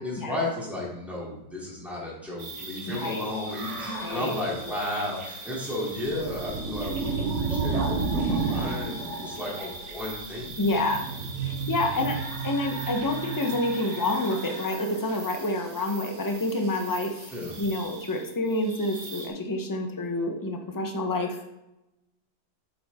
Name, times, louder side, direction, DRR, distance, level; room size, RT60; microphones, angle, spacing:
voice 1, 0.0-10.5 12.1-12.2 17.3-17.6, left 1 dB, ahead, -6 dB, 2.8 m, -33 dB
sound 1, 2.4-19.3, right 4 dB, 45° right, 1.6 m, -34 dB
voice 2, 2.9-3.3 3.9-4.3 10.6-11.0 11.4-12.2 12.4-17.3 17.6-21.5, left 2 dB, 20° left, 4 dB, 0.6 m, -28 dB
8.2 x 7.4 x 3.6 m, 0.89 s
omnidirectional pair, 1.9 m